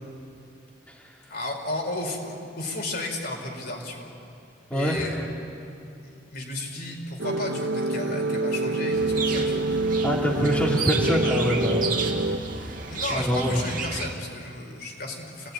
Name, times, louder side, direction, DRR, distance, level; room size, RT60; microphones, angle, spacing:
voice 1, 1.3-4.1 4.7-5.2 6.0-9.7 12.9-15.5, left 2 dB, 55° left, 1 dB, 4.7 m, -33 dB
voice 2, 4.7-5.1 10.0-12.1 12.6-12.8 13.1-13.6, equal, 10° left, -3 dB, 2.7 m, -25 dB
sound 1, 7.2-12.4, right 2 dB, 80° right, 1.5 m, -26 dB
sound 2, 8.9-14.1, right 5 dB, 45° right, 2.3 m, -32 dB
27.5 x 18.5 x 9.9 m, 2.6 s
head